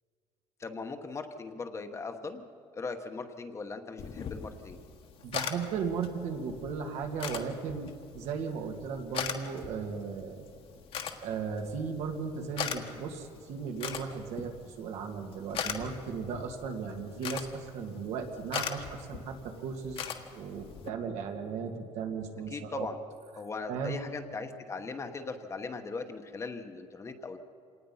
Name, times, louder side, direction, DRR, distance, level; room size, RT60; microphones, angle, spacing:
voice 1, 0.6-2.4 2.7-4.8 22.5-23.0 23.3-27.4, left 4 dB, 25° left, 7 dB, 1.1 m, -39 dB
sound 1, 4.0-20.9, left 7 dB, 55° left, 1.5 m, -41 dB
voice 2, 5.2-10.4 11.2-22.9 23.7-24.0, right 5 dB, 75° right, 3 dB, 2.3 m, -36 dB
26.0 x 19.0 x 5.7 m, 2.3 s
cardioid pair, 145°, 12 cm